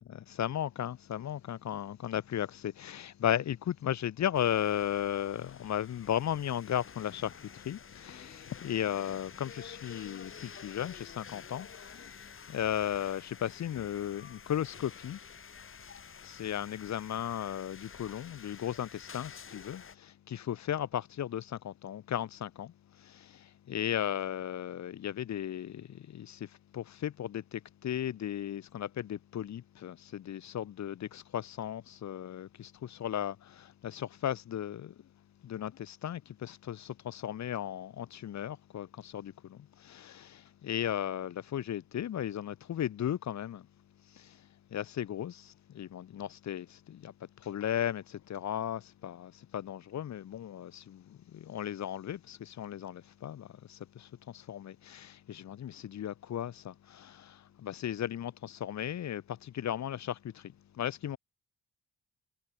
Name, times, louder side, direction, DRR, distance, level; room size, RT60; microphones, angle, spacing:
voice 1, 0.1-15.2 16.2-34.9 35.4-43.7 44.1-61.2, left 10 dB, 65° left, 3.1 m, -36 dB
sound 1, 4.3-19.9, left 6 dB, 45° left, 6.5 m, -50 dB
cardioid pair, 90°, 30 cm